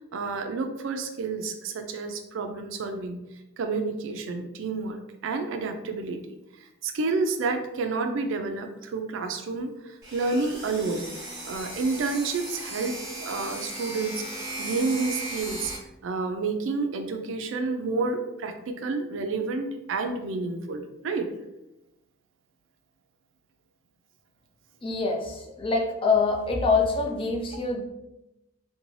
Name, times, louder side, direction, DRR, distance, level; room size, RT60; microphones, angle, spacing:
voice 1, 0.1-3.2 3.6-6.2 6.6-11.1 11.5-15.7 16.0-21.3, right 3 dB, 65° right, 6 dB, 0.4 m, -30 dB
sound 1, 10.0-15.8, right 1 dB, 15° right, 0.9 m, -37 dB
voice 2, 24.8-27.8, left 4 dB, 25° left, 1 dB, 0.4 m, -25 dB
2.5 x 2.2 x 3.1 m, 0.92 s
head